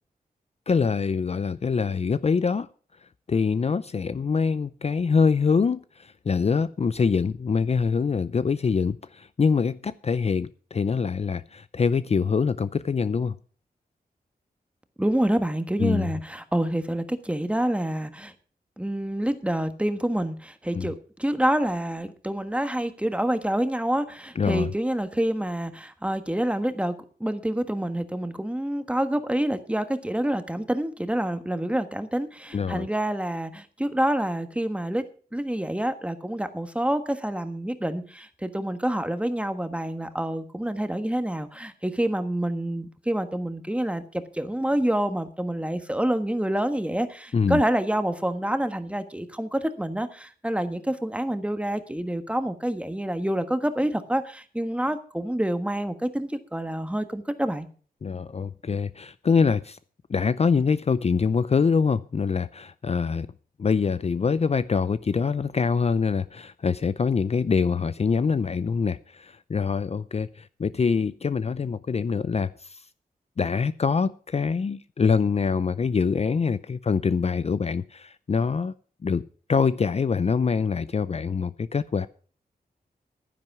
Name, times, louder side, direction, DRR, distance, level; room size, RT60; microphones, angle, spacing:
voice 1, 0.7-2.7 3.3-13.4 15.8-16.1 20.7-20.9 24.4-24.7 32.5-32.9 47.3-47.6 58.0-59.8 60.1-63.3 63.6-72.8 73.4-78.7 79.0-79.2 79.5-82.1, left 5 dB, 40° left, 15 dB, 0.5 m, -24 dB
voice 2, 15.0-18.3 18.8-35.0 35.3-57.7, right 1 dB, 10° right, 9 dB, 1.4 m, -27 dB
11.0 x 10.5 x 6.0 m, 0.42 s
wide cardioid pair, 85°, 16 cm